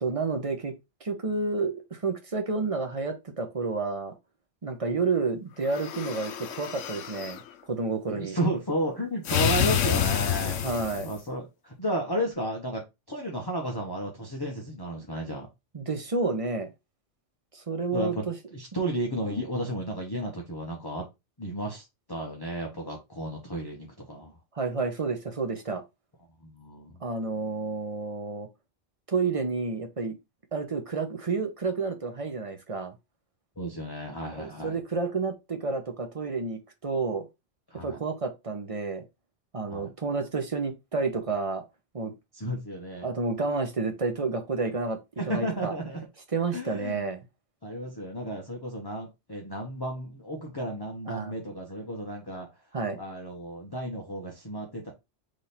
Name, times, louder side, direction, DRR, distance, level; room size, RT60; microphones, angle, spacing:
voice 1, 0.0-0.7 1.0-4.2 4.6-7.4 7.7-8.4 10.6-11.1 15.7-16.7 17.5-18.3 24.6-25.8 27.0-28.5 29.1-30.2 30.5-32.9 34.3-37.3 37.8-39.0 39.5-41.6 41.9-42.1 43.0-45.0 45.3-45.7 46.3-47.2 51.1-51.3 52.7-53.0, right 4 dB, 35° right, 0.6 m, -30 dB
sound 1, 5.7-7.4 9.2-11.2, left 9 dB, 75° left, 1.0 m, -28 dB
voice 2, 8.1-10.6 11.0-12.8 13.1-15.5 17.9-18.2 18.5-21.0 21.4-24.4 26.4-27.0 33.6-34.8 37.7-38.0 39.7-39.9 42.3-43.1 45.2-46.0 46.5-47.0 47.6-52.5 53.0-54.9, right 1 dB, 20° left, 1.0 m, -33 dB
3.8 x 3.3 x 4.1 m
omnidirectional pair, 1.3 m